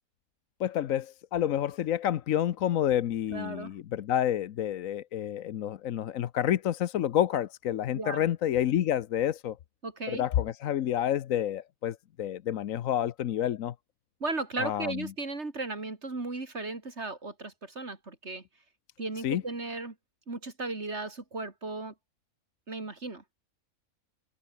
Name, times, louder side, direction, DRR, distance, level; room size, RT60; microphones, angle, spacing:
voice 1, 0.6-9.6 10.1-13.7 14.6-15.1 19.2-19.4, left 11 dB, 70° left, 1.1 m, -29 dB
voice 2, 3.3-3.7 7.9-8.2 9.8-10.2 14.2-18.4 19.0-19.9 20.3-21.9 22.7-23.2, right 3 dB, 50° right, 3.2 m, -36 dB
omnidirectional pair, 1.5 m